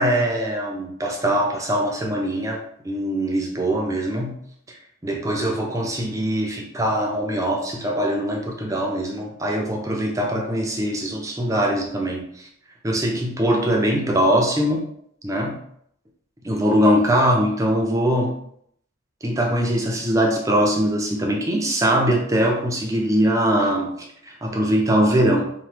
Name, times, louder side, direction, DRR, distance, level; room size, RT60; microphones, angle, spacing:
voice 1, 0.0-4.4 4.7-4.8 5.0-12.5 12.8-14.9 15.2-15.6 16.4-18.4 19.2-25.5, equal, 15° right, 0 dB, 0.4 m, -22 dB
2.9 x 2.1 x 3.2 m, 0.70 s
head